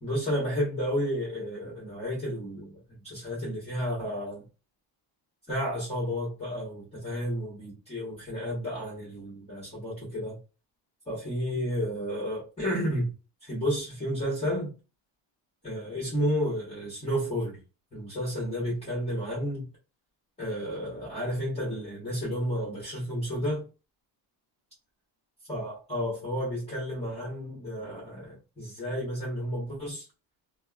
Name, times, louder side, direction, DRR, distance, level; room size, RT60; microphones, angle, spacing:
voice 1, 0.0-4.4 5.5-10.4 11.1-13.1 13.4-14.7 15.6-17.6 17.9-19.7 20.4-23.7 25.5-30.1, equal, 15° left, 1.5 m, -31 dB
3.3 x 2.3 x 2.4 m
cardioid pair, 145°, 48 cm